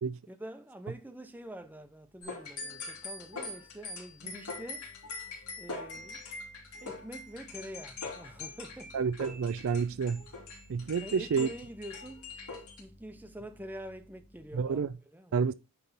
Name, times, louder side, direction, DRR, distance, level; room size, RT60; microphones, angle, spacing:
voice 1, 0.3-4.9 5.6-6.2 6.8-9.0 11.0-12.3 12.8-15.5, right 1 dB, 10° right, 0.7 m, -46 dB
sound 1, 1.1-14.9, equal, 35° left, 2.2 m, -59 dB
sound 2, 2.2-12.8, left 3 dB, 80° left, 2.8 m, -43 dB
voice 2, 8.9-10.2 10.7-11.5 14.5-14.9 15.3-15.5, right 6 dB, 65° right, 0.4 m, -29 dB
9.5 x 3.4 x 4.2 m
head